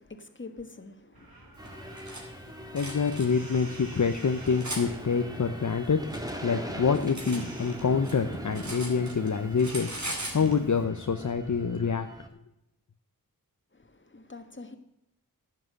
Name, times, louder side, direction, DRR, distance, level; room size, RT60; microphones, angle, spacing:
voice 1, 0.0-1.9 13.7-14.8, left 3 dB, 35° left, 1.6 m, -46 dB
sound 1, 1.1-11.6, right 1 dB, 85° right, 3.4 m, -51 dB
sound 2, 1.6-12.3, equal, 10° right, 2.0 m, -41 dB
Cutlery silverware, 1.6-2.2 2.7-3.3 4.0-4.8 5.7-7.4 7.7-9.3 9.6-10.4, right 1 dB, 50° right, 3.8 m, -39 dB
voice 2, 2.7-6.0 6.4-12.1, left 5 dB, 55° left, 0.8 m, -26 dB
11.5 x 7.6 x 7.7 m
wide cardioid pair, 50°, 35 cm